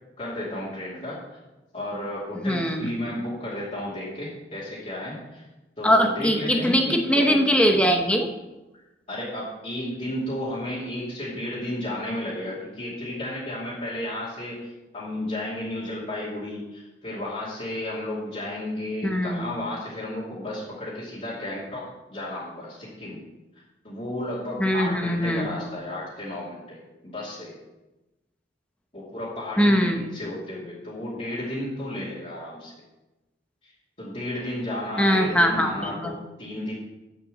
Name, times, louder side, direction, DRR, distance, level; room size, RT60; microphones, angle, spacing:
voice 1, 0.2-1.2 1.7-5.5 5.8-7.0 9.1-14.6 14.9-23.2 23.8-27.6 28.9-32.7 34.0-36.7, left 1 dB, 40° left, -9 dB, 2.7 m, -33 dB
voice 2, 2.4-2.9 5.8-8.3 19.0-19.5 24.6-25.6 29.6-30.0 35.0-36.1, equal, 5° left, 3 dB, 0.9 m, -21 dB
7.6 x 7.1 x 7.7 m, 1.0 s
head